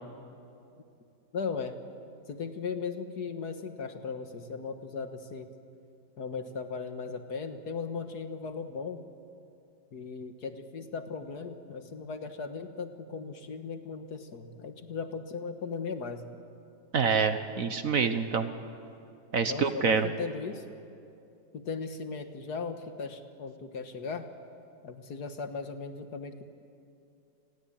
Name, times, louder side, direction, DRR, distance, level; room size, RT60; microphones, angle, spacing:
voice 1, 1.3-1.8 2.3-5.5 6.2-9.0 9.9-16.3 19.5-20.6 21.5-24.3 24.8-26.5, left 5 dB, 60° left, 7 dB, 1.9 m, -37 dB
voice 2, 16.9-18.5 19.3-20.1, right 5 dB, 55° right, 9 dB, 1.3 m, -26 dB
29.5 x 20.5 x 8.7 m, 2.6 s
omnidirectional pair, 1.9 m